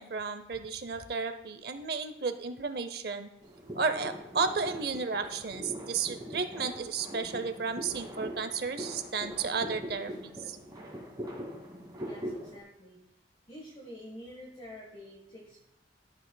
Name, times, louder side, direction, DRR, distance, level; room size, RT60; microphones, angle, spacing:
voice 1, 0.0-3.3 3.7-10.6, right 5 dB, 55° right, 9 dB, 0.6 m, -33 dB
sound 1, 3.4-12.6, equal, 20° right, 2.0 m, -42 dB
voice 2, 12.0-13.0 13.5-15.7, left 1 dB, 30° left, -3 dB, 1.2 m, -47 dB
13.0 x 6.0 x 2.2 m, 0.82 s
head